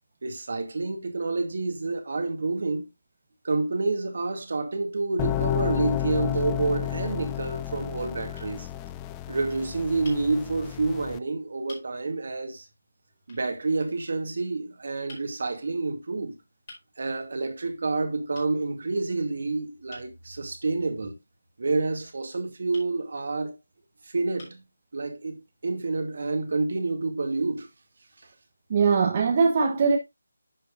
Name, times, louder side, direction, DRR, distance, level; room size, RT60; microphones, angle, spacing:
voice 1, 0.2-2.9 3.4-8.7 9.3-12.7 13.3-16.3 17.0-21.1 21.6-23.6 24.0-24.6 24.9-27.7, right 3 dB, 60° right, 2.2 m, -28 dB
sound 1, 5.2-11.2, left 13 dB, 15° left, 0.3 m, -31 dB
sound 2, 8.3-8.5 10.0-10.2 11.1-11.2 11.7-11.9 13.3-13.5 15.1-15.3 16.7-16.9 18.3-18.5 19.9-20.1 22.7-22.9 23.8-23.9 24.4-24.7, left 2 dB, 35° left, 4.6 m, -48 dB
voice 2, 28.7-30.0, right 5 dB, 30° right, 1.1 m, -21 dB
10.5 x 6.5 x 2.5 m
figure-of-eight pair, 165°, 0 cm